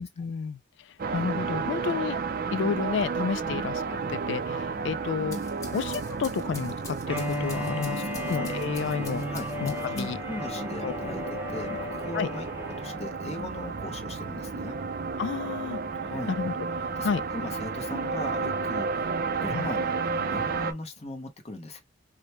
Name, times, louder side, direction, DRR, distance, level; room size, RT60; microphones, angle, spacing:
voice 1, 0.0-2.2 2.5-3.8 4.1-5.4 5.7-9.2 9.6-10.2 10.8-10.9 12.1-12.3 15.2-15.8 16.3-16.5 17.0-17.2 19.5-19.7, left 6 dB, 65° left, 0.3 m, -31 dB
sound 1, 1.0-20.7, right 4 dB, 45° right, 0.5 m, -32 dB
sound 2, 5.1-10.4, left 3 dB, 15° left, 1.2 m, -46 dB
Bowed string instrument, 7.1-13.1, left 1 dB, 10° right, 0.9 m, -35 dB
voice 2, 7.6-8.4 9.3-9.5 9.8-11.2 11.5-14.8 16.0-16.4 16.8-21.8, left 1 dB, 30° left, 0.9 m, -39 dB
5.0 x 2.1 x 2.9 m
head